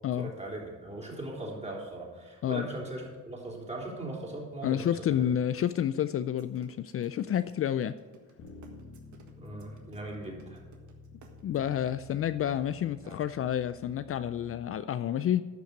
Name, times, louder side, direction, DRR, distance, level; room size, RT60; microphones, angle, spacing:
voice 1, 0.2-5.2 9.4-10.6, right 1 dB, 20° right, -1 dB, 3.5 m, -39 dB
voice 2, 4.6-8.0 11.4-15.4, left 10 dB, 50° left, 13 dB, 0.4 m, -29 dB
sound 1, 6.3-11.8 12.6-13.2, right 7 dB, 75° right, 1.7 m, -56 dB
Bass guitar, 8.4-14.6, left 3 dB, 85° left, 2.5 m, -51 dB
12.0 x 5.6 x 6.6 m, 1.4 s
cardioid pair, 90°, 30 cm